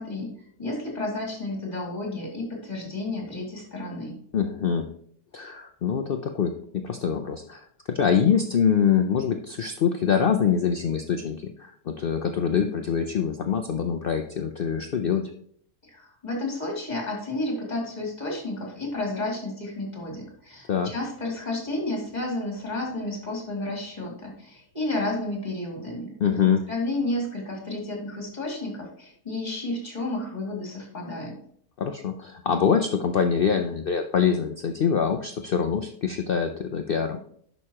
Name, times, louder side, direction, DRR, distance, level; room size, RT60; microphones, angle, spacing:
voice 1, 0.0-4.2 15.9-26.2 26.7-31.4, left 2 dB, 30° left, -1 dB, 2.5 m, -31 dB
voice 2, 4.3-4.9 5.3-7.6 7.9-15.3 20.7-20.9 26.2-26.6 31.8-37.2, left 7 dB, 60° left, 6 dB, 0.6 m, -24 dB
11.0 x 5.6 x 2.9 m, 0.63 s
omnidirectional pair, 1.6 m